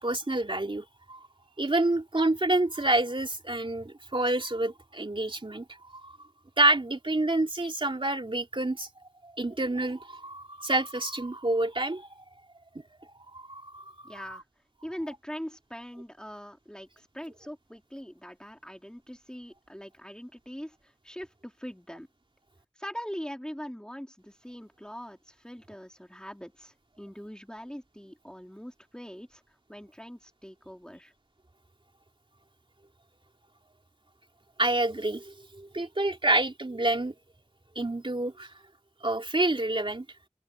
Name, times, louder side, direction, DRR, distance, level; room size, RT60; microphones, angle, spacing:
voice 1, 0.0-1.2 1.6-5.6 5.9-6.1 6.6-8.9 9.4-12.1 13.3-14.1 34.6-37.1 37.7-38.5 39.0-40.0, right 2 dB, 45° right, 3.0 m, -28 dB
voice 2, 14.0-14.4 14.8-22.1 22.8-29.4 29.7-31.1, equal, 5° left, 3.2 m, -42 dB
wide cardioid pair, 60°, 13 cm